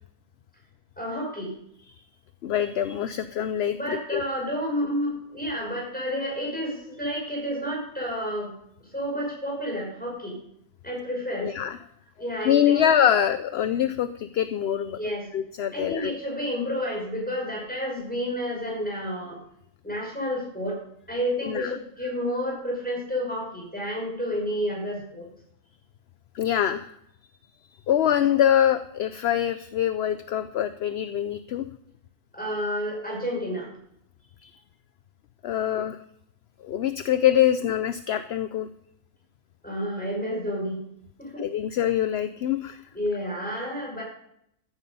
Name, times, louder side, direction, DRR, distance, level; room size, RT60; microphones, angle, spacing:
voice 1, 1.0-1.6 3.7-8.5 8.9-10.4 10.8-11.5 12.2-12.9 14.9-15.3 15.7-19.4 19.8-20.8 21.1-25.3 32.3-33.7 39.6-40.8 41.2-41.4 42.9-44.0, equal, 5° left, -2 dB, 6.0 m, -30 dB
voice 2, 2.4-4.2 11.4-11.8 12.4-15.0 15.3-16.1 21.4-21.7 26.3-27.0 27.9-31.7 34.4-34.5 35.4-36.0 36.6-38.7 41.4-42.8, left 10 dB, 60° left, 12 dB, 0.7 m, -24 dB
14.0 x 10.0 x 5.4 m, 0.73 s
omnidirectional pair, 1.5 m